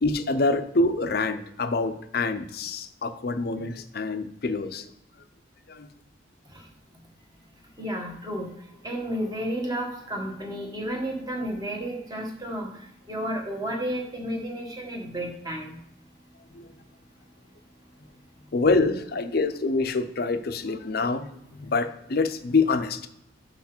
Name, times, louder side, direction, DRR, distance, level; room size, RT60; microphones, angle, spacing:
voice 1, 0.0-4.9 5.7-5.9 16.5-16.7 18.5-23.0, left 3 dB, 55° left, 9 dB, 0.6 m, -26 dB
voice 2, 7.8-15.8, equal, 20° right, 0 dB, 1.3 m, -32 dB
5.9 x 5.4 x 4.4 m, 0.78 s
head